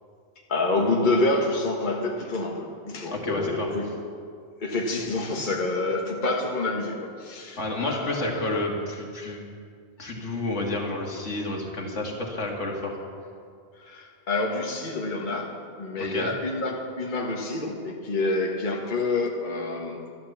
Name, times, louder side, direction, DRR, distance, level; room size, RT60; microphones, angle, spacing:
voice 1, 0.5-4.0 4.6-8.6 13.8-20.1, left 2 dB, 40° left, -1 dB, 1.5 m, -28 dB
voice 2, 3.1-3.7 7.6-9.5 10.0-13.0 16.0-16.3, left 2 dB, 70° left, 0 dB, 2.3 m, -30 dB
13.0 x 12.0 x 7.2 m, 2.2 s
omnidirectional pair, 1.3 m